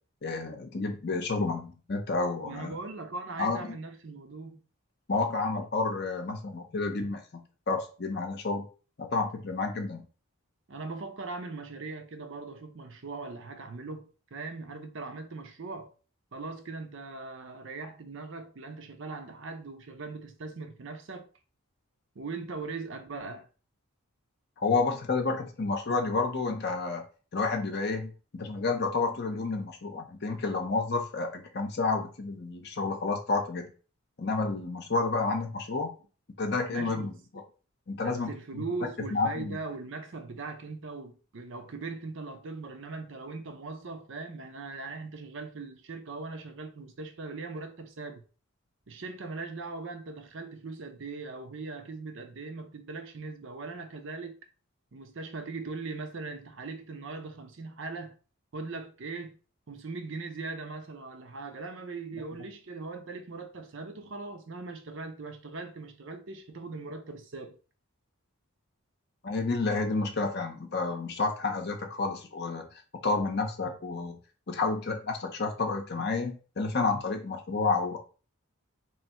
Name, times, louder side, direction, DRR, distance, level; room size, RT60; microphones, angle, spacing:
voice 1, 0.2-2.8 3.4-3.6 5.1-7.4 7.7-8.6 9.0-10.0 24.6-27.0 27.3-33.7 34.2-35.9 36.4-37.1 37.9-38.6 39.1-39.6 69.2-72.7 73.0-74.2 74.5-78.0, left 3 dB, 45° left, 0.6 m, -30 dB
voice 2, 2.4-4.6 10.7-15.9 16.3-21.3 22.2-23.5 36.7-37.2 38.0-48.2 48.9-54.4 54.9-58.2 58.5-59.3 59.7-67.6, right 3 dB, 55° right, 0.6 m, -40 dB
3.1 x 2.7 x 4.3 m
head